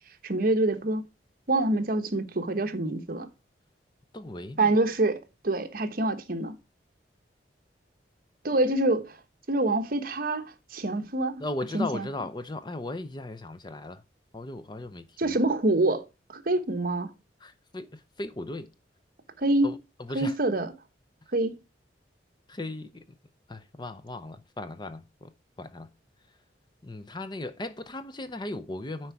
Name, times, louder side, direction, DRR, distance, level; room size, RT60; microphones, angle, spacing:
voice 1, 0.2-1.0 1.5-3.3 4.6-6.5 8.4-9.2 9.5-10.4 10.7-11.4 11.7-12.1 15.2-16.0 16.3-17.1 19.4-19.8 20.1-20.7 21.3-21.5, right 2 dB, 50° right, 1.1 m, -26 dB
voice 2, 4.1-4.7 11.4-14.0 14.3-15.4 17.4-18.7 19.6-19.8 20.1-20.4 22.5-23.0 23.5-25.3 25.6-25.9 26.8-29.1, left 2 dB, 25° left, 0.6 m, -37 dB
9.7 x 4.6 x 4.6 m
head